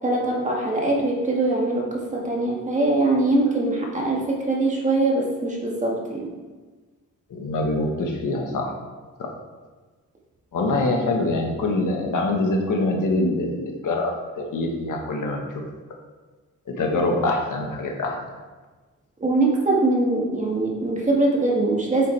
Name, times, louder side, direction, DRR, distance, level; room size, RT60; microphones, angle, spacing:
voice 1, 0.0-6.3 19.2-22.1, right 2 dB, 20° right, -2 dB, 1.7 m, -22 dB
voice 2, 7.3-8.7 9.2-9.3 10.5-15.4 16.7-18.2, left 2 dB, 70° left, 1 dB, 1.5 m, -24 dB
9.3 x 7.1 x 3.4 m, 1.3 s
wide cardioid pair, 145°, 33 cm